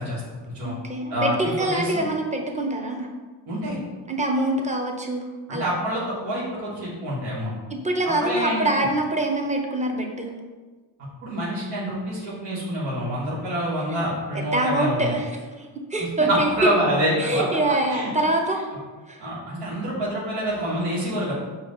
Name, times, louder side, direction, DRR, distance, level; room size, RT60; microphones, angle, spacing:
voice 1, 0.0-0.7 1.1-2.0 3.5-3.8 5.5-7.5 8.0-8.7 11.2-15.1 16.0-17.4 17.9-18.1 19.2-21.3, equal, 90° right, -7 dB, 1.4 m, -27 dB
voice 2, 0.6-3.1 4.1-5.7 7.7-10.3 13.9-14.0 14.3-16.5 17.2-18.7 19.1-19.3, right 1 dB, 15° right, 1 dB, 0.8 m, -25 dB
5.1 x 2.6 x 3.9 m, 1.4 s
supercardioid pair, 70°, 48 cm